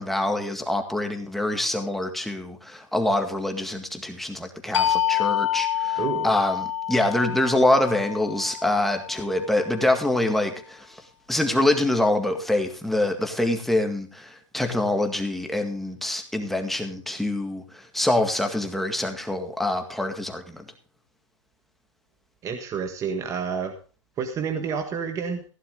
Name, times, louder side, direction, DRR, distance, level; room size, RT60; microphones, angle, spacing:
voice 1, 0.0-11.0 11.3-20.6, left 1 dB, ahead, 4 dB, 2.0 m, -25 dB
sound 1, 4.7-10.0, left 12 dB, 65° left, 2.4 m, -28 dB
voice 2, 6.0-6.3 22.4-23.8 24.2-25.4, right 6 dB, 20° right, 5 dB, 1.5 m, -29 dB
15.5 x 11.0 x 3.8 m, 0.36 s
hypercardioid pair, 140°, 16 cm